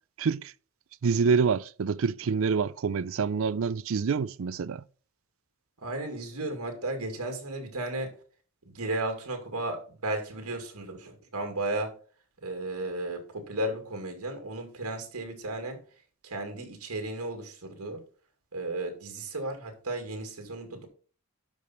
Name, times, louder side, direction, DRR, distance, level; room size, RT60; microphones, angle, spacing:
voice 1, 0.2-0.5 1.0-4.8, right 5 dB, 60° right, 0.4 m, -27 dB
voice 2, 5.8-8.1 8.7-11.9 12.4-15.8 16.2-18.0 18.5-20.9, right 2 dB, 85° right, 2.2 m, -34 dB
12.0 x 4.9 x 4.3 m
head